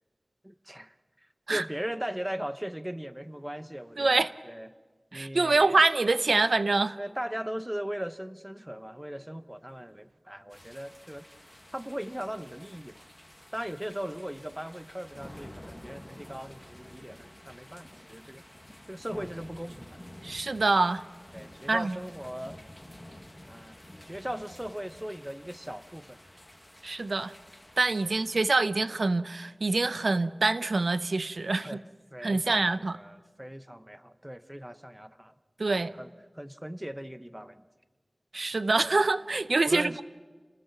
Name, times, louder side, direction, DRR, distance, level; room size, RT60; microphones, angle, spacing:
voice 1, 0.4-4.7 5.1-5.7 7.0-11.3 11.7-13.0 13.5-18.4 18.9-20.0 21.3-22.6 23.5-26.2 28.0-28.1 31.6-31.8 32.1-35.4 35.8-36.1 36.3-37.7 39.6-40.0, equal, 10° right, 12 dB, 0.9 m, -39 dB
voice 2, 4.0-4.3 5.1-7.0 20.2-21.0 21.7-22.0 26.8-27.3 27.8-31.8 32.2-33.0 35.6-35.9 38.3-40.0, right 3 dB, 85° right, 14 dB, 0.6 m, -25 dB
sound 1, 10.5-28.5, left 1 dB, 15° left, 1.5 m, -50 dB
29.0 x 20.0 x 5.9 m, 1.4 s
wide cardioid pair, 60°, 0 cm